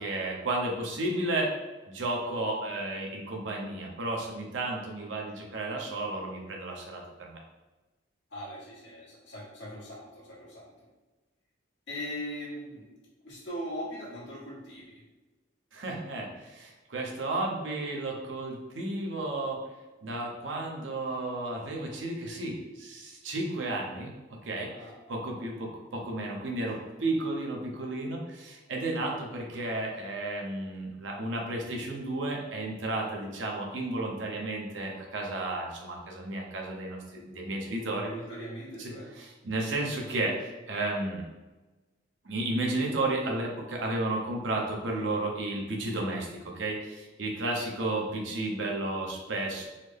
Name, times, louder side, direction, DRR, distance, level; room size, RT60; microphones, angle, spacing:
voice 1, 0.0-1.5 1.9-7.4 15.7-19.6 20.0-24.1 24.4-24.7 25.1-38.1 38.8-41.2 42.2-49.7, right 2 dB, 75° right, 0 dB, 0.8 m, -33 dB
voice 2, 8.3-10.9 11.9-12.9 13.2-15.0 24.6-25.4 37.7-39.1 47.3-47.4, equal, 70° left, -6 dB, 1.3 m, -40 dB
3.9 x 2.0 x 3.3 m, 1.2 s
head